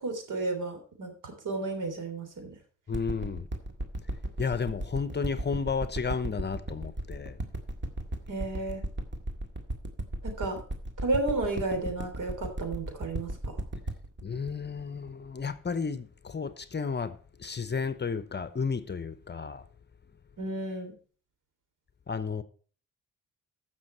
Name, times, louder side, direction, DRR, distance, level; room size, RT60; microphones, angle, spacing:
voice 1, 0.0-2.6 8.3-8.8 10.2-10.6 11.0-13.6 20.4-20.9, right 2 dB, 75° right, 3.4 m, -32 dB
voice 2, 2.9-3.5 4.4-7.4 14.2-19.6 22.1-22.4, left 5 dB, 35° left, 0.9 m, -32 dB
sound 1, 2.9-15.7 16.3-16.4, right 1 dB, 35° right, 2.0 m, -35 dB
14.5 x 6.2 x 4.4 m
cardioid pair, 85°, 32 cm